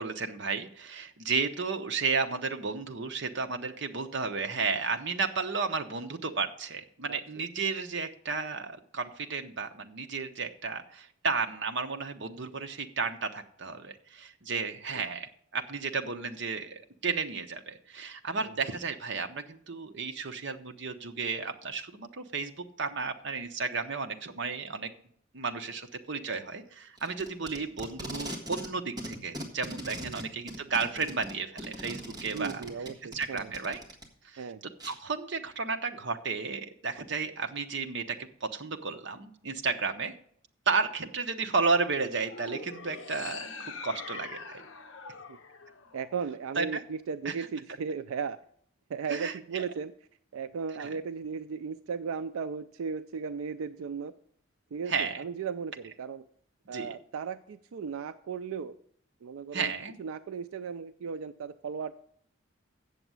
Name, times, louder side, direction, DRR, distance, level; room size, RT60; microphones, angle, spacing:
voice 1, 0.0-24.9 25.3-32.6 33.1-33.8 34.2-34.4 34.9-40.1 40.7-44.6 46.6-46.8 47.2-47.5 49.1-49.6 50.8-50.9 54.9-55.2 56.7-56.9 59.5-60.0, right 4 dB, 60° right, 6 dB, 0.9 m, -33 dB
voice 2, 7.1-7.5 18.4-18.5 30.0-30.2 32.2-33.5 34.4-34.6 45.3-45.4 45.9-48.4 48.9-49.9 50.3-54.1 54.7-56.3 56.7-58.8 59.2-59.7 60.0-62.0, right 6 dB, 85° right, 11 dB, 0.4 m, -36 dB
Packing tape duct tape, 27.0-28.7 29.0-34.0 34.8-34.9, equal, 20° right, 1.6 m, -40 dB
sound 1, 42.2-46.6, left 5 dB, 60° left, 0.8 m, -44 dB
8.1 x 6.9 x 7.5 m, 0.64 s
head